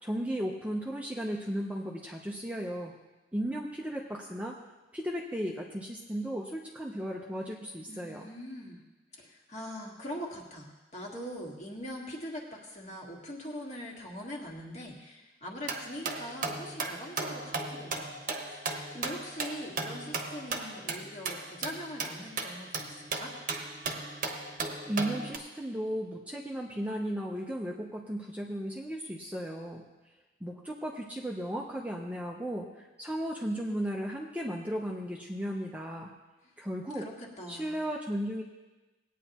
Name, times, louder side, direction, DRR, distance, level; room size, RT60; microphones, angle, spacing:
voice 1, 0.0-2.9 3.3-4.6 4.9-8.3 24.9-29.8 30.4-36.1 36.6-37.0 37.5-38.4, equal, 5° right, -1 dB, 0.7 m, -35 dB
voice 2, 7.9-8.8 9.1-23.3 36.4-36.5 37.0-37.8, equal, 35° left, -1 dB, 1.8 m, -42 dB
sound 1, 15.6-25.4, right 3 dB, 40° right, 1.1 m, -36 dB
19.0 x 9.2 x 2.9 m, 1.1 s
head